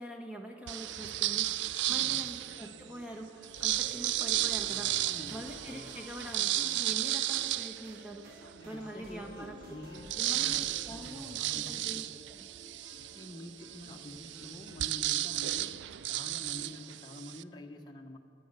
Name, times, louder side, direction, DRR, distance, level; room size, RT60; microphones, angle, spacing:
voice 1, 0.0-9.6 10.2-12.5, right 1 dB, 5° right, 1 dB, 1.5 m, -44 dB
sound 1, 0.7-2.8 3.4-8.6 9.1-9.2 9.4-17.4, right 14 dB, 65° right, 0.3 m, -34 dB
sound 2, 0.9-16.9, left 2 dB, 25° right, 4.3 m, -57 dB
voice 2, 1.9-2.2 5.0-5.5 8.6-10.6 10.9-12.1 13.1-18.2, left 1 dB, 20° left, 1 dB, 1.1 m, -48 dB
sound 3, 3.5-11.5, right 1 dB, 50° right, 2.1 m, -52 dB
19.0 x 9.1 x 6.8 m, 2.4 s
head